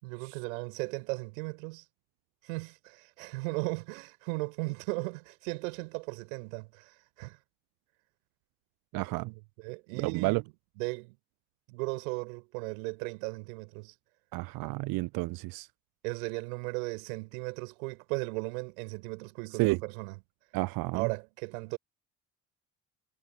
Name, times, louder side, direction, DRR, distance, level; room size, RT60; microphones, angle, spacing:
voice 1, 0.0-1.8 2.4-7.4 9.2-10.4 10.8-11.2 11.7-13.9 16.0-20.2 20.9-21.8, right 29 dB, 75° right, 5.9 m, -37 dB
voice 2, 8.9-9.3 10.0-10.4 14.3-15.7 19.6-19.8 20.5-21.1, right 24 dB, 55° right, 0.5 m, -30 dB
hypercardioid pair, 50°, 42 cm